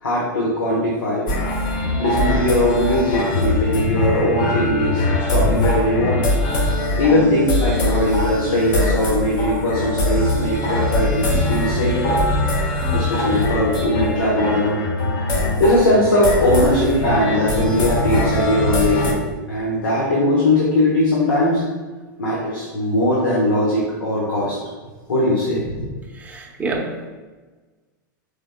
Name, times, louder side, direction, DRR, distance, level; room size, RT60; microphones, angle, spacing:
voice 1, 0.0-1.3 2.0-6.2 7.0-12.2 12.9-14.8 15.6-19.2 19.5-21.6 22.2-24.6 25.1-25.6, left 1 dB, 85° left, -5 dB, 1.1 m, -20 dB
sound 1, 1.3-19.1, left 1 dB, 40° left, 0.7 m, -21 dB
voice 2, 26.2-27.1, right 3 dB, 15° right, 0 dB, 0.7 m, -28 dB
5.0 x 3.5 x 2.3 m, 1.3 s
hypercardioid pair, 120°, 11 cm